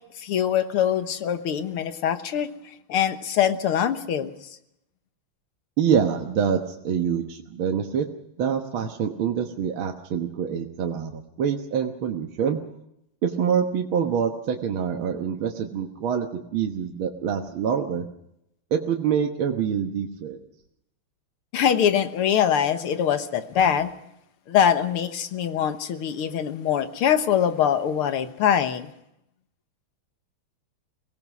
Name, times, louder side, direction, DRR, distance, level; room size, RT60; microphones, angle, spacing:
voice 1, 0.2-2.5 2.9-4.3 21.5-23.9 24.5-28.9, left 9 dB, 85° left, 9 dB, 2.1 m, -23 dB
voice 2, 5.8-8.1 8.4-12.6 13.2-16.3 16.5-18.0 18.7-20.4, right 7 dB, 70° right, 3 dB, 2.1 m, -25 dB
23.5 x 18.0 x 6.1 m, 0.80 s
omnidirectional pair, 2.4 m